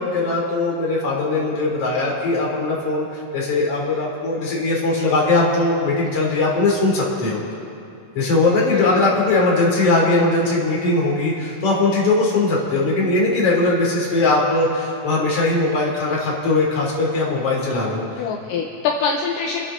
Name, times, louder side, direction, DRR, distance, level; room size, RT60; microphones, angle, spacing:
voice 1, 0.0-7.4 8.2-18.2, left 2 dB, 45° left, -3 dB, 3.6 m, -20 dB
voice 2, 8.6-9.1 18.2-19.7, left 6 dB, 75° left, 0 dB, 2.4 m, -24 dB
28.0 x 10.5 x 3.7 m, 2.7 s
omnidirectional pair, 4.0 m